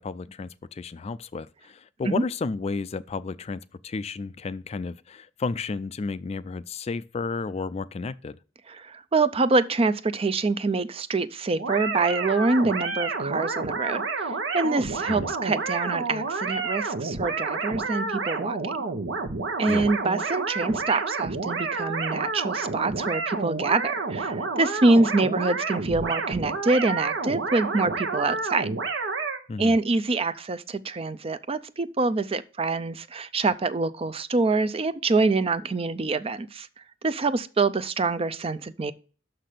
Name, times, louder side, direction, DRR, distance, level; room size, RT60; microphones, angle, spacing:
voice 1, 0.0-8.4 15.1-15.3 19.7-19.9 29.5-29.8, left 4 dB, 35° left, 0.3 m, -32 dB
voice 2, 8.7-18.7 19.6-28.8 29.6-36.7 37.0-38.9, right 3 dB, 30° right, 0.5 m, -25 dB
sound 1, 11.6-29.4, right 4 dB, 75° right, 1.2 m, -29 dB
6.4 x 5.8 x 6.7 m
head